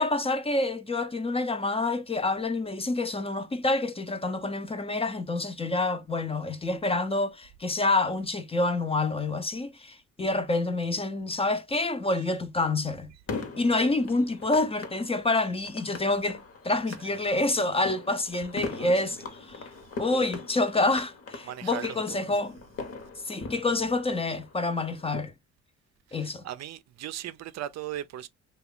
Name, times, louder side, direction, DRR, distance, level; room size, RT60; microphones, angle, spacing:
voice 1, 0.0-13.1 13.6-19.6 20.0-22.6 23.2-25.3 26.1-26.4, left 2 dB, 20° left, 0.5 m, -27 dB
sound 1, 13.3-25.2, left 4 dB, 50° left, 1.0 m, -41 dB
voice 2, 16.9-17.2 18.8-18.9 19.7-19.8 21.4-22.3 26.1-28.3, right 12 dB, 60° right, 0.5 m, -39 dB
2.9 x 2.3 x 3.7 m
cardioid pair, 90°, 30 cm